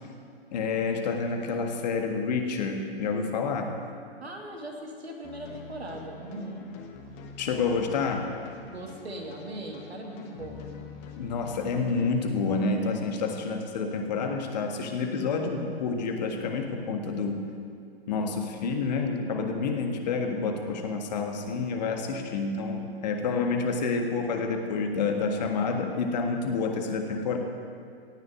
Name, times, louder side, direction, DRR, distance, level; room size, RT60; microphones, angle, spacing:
voice 1, 0.5-3.7 7.4-8.3 11.2-17.5 18.1-27.4, left 4 dB, 40° left, 4 dB, 1.7 m, -28 dB
voice 2, 4.2-6.7 8.7-10.6, right 1 dB, 75° right, 1 dB, 2.7 m, -39 dB
sound 1, 5.2-12.1, left 5 dB, 25° left, 1.3 m, -46 dB
17.0 x 6.8 x 8.2 m, 2.2 s
figure-of-eight pair, 125°, 32 cm